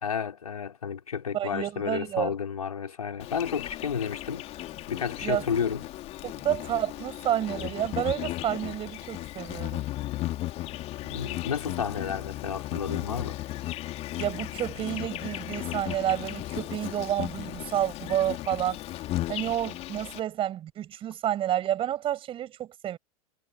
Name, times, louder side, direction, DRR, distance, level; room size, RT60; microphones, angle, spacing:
voice 1, 0.0-4.4 4.9-5.8 11.0-13.4, left 7 dB, 70° left, 4.3 m, -31 dB
voice 2, 1.3-2.3 5.2-5.5 6.2-9.9 14.2-18.8 19.3-23.0, right 11 dB, 30° right, 5.8 m, -30 dB
Insect, 3.2-20.2, left 15 dB, 30° left, 2.9 m, -36 dB
figure-of-eight pair, 95°, 19 cm